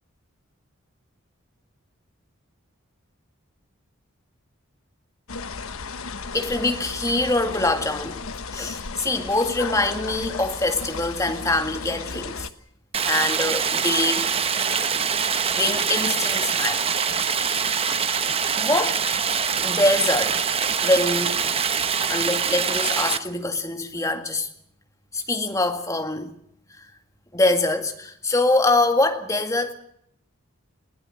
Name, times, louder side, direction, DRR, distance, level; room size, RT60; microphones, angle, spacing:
sound 1, 5.3-12.5, left 4 dB, 80° left, 1.1 m, -34 dB
voice 1, 6.3-8.2 8.5-12.5 13.0-14.3 15.5-16.8 18.6-19.0 19.6-20.4 20.8-21.4 22.1-24.5 25.1-26.3 26.8-26.9 27.3-29.7, left 2 dB, 15° left, 2.0 m, -24 dB
Stream, 12.9-23.2, right 6 dB, 25° right, 1.0 m, -24 dB
22.0 x 17.0 x 7.7 m
head